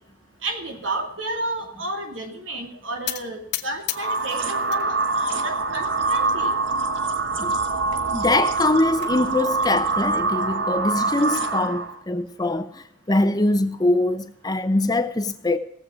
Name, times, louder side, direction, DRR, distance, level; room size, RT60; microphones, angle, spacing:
voice 1, 0.4-6.5, right 2 dB, 90° right, 2.6 m, -31 dB
sound 1, 3.1-4.8 5.2-5.9 6.4-6.5 6.8-6.9 7.3-7.4 8.5-9.1, left 13 dB, 60° left, 0.9 m, -34 dB
sound 2, 3.9-12.0, right 3 dB, 70° right, 1.3 m, -24 dB
voice 2, 8.1-15.6, left 2 dB, 20° left, 0.8 m, -23 dB
18.5 x 7.7 x 5.0 m
head